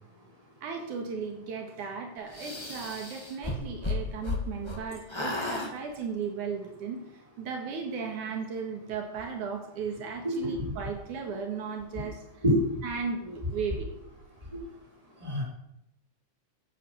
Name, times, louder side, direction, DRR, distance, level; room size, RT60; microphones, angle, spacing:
voice 1, 0.6-7.0 7.4-12.2 12.8-13.9, right 5 dB, 80° right, 3 dB, 3.1 m, -36 dB
sound 1, 2.3-4.8 5.1-5.7, left 2 dB, 15° left, 1.0 m, -33 dB
voice 2, 10.2-10.5 12.4-12.6 15.2-15.4, equal, 10° right, -4 dB, 5.4 m, -25 dB
15.0 x 8.1 x 7.1 m, 0.83 s
omnidirectional pair, 3.5 m